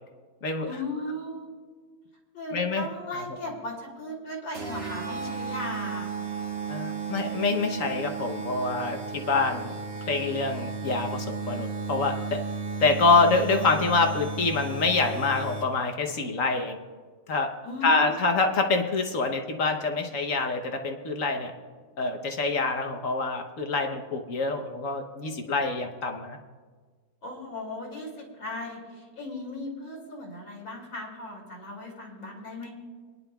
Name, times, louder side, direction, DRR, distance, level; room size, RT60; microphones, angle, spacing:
voice 1, 0.7-1.5 2.3-6.1 17.6-18.3 27.2-32.7, left 1 dB, 85° left, -1 dB, 3.4 m, -37 dB
voice 2, 2.5-2.8 3.1-3.2 6.7-9.7 10.1-12.4 12.8-16.8 17.3-17.5 17.8-21.5 22.0-26.4, left 3 dB, 55° left, 4 dB, 1.1 m, -26 dB
sound 1, 4.5-15.9, right 4 dB, 50° right, 1.8 m, -34 dB
25.5 x 10.5 x 2.3 m, 1.5 s
omnidirectional pair, 2.0 m